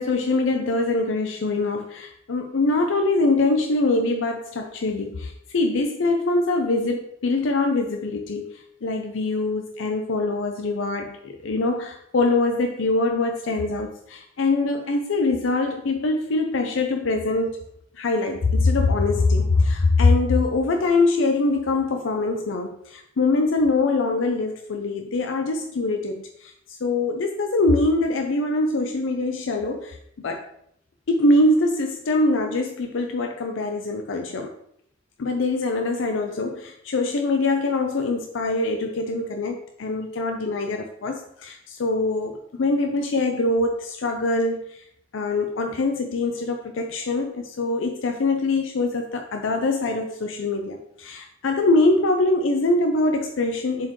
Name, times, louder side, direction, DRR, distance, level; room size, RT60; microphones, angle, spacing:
voice 1, 0.0-17.6 17.9-30.4 31.1-34.6 35.2-44.8 45.1-53.9, left 2 dB, 75° left, 4 dB, 0.5 m, -23 dB
7.2 x 4.4 x 3.1 m, 0.72 s
head